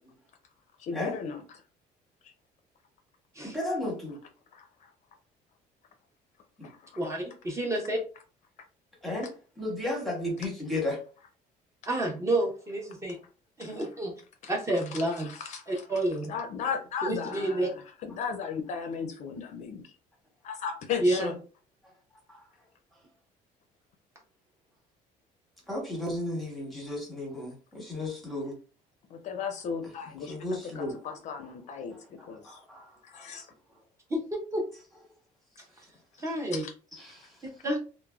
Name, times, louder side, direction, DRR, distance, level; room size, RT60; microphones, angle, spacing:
voice 1, 0.8-1.4 2.2-2.3 4.5-4.9 6.6-7.0 13.6-13.9 14.4-14.5 14.9-16.0 16.3-19.9 20.4-21.4 29.1-32.6 33.0-33.5 36.5-36.7, left 6 dB, 50° left, 0.4 m, -36 dB
voice 2, 3.5-4.2 6.6-6.7 9.0-9.3 9.6-11.0 22.3-22.4 25.7-28.6 30.3-30.9 32.4-32.9 37.0-37.3, left 1 dB, ahead, 0.9 m, -33 dB
voice 3, 7.0-8.0 11.9-13.2 13.6-14.1 14.5-15.3 15.7-16.3 17.0-17.7 21.0-21.3 34.1-34.2 34.5-34.6 36.2-36.6 37.6-37.8, right 1 dB, 20° right, 0.5 m, -29 dB
3.2 x 2.0 x 2.3 m
cardioid pair, 165°, 15 cm